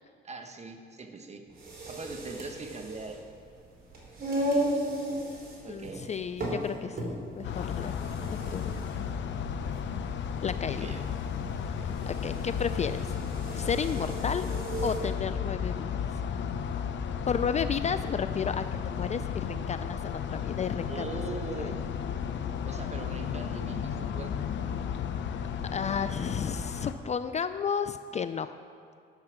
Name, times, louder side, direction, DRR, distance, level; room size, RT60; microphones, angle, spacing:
voice 1, 0.2-1.5 1.9-3.2 5.6-6.1 10.8-11.1 20.9-21.8 22.6-24.5, right 3 dB, 35° right, 5 dB, 1.1 m, -41 dB
sound 1, 1.5-15.1, right 1 dB, 50° right, 3.1 m, -36 dB
voice 2, 5.7-7.1 7.3-8.0 8.3-8.7 10.4-11.0 11.8-13.2 13.5-14.5 14.8-16.0 17.3-21.0 21.6-21.8 25.7-28.5, left 6 dB, 35° left, 11 dB, 0.4 m, -32 dB
sound 2, 7.4-26.9, left 7 dB, 65° left, 0.7 m, -33 dB
10.5 x 7.3 x 6.1 m, 2.2 s
cardioid pair, 90°, 20 cm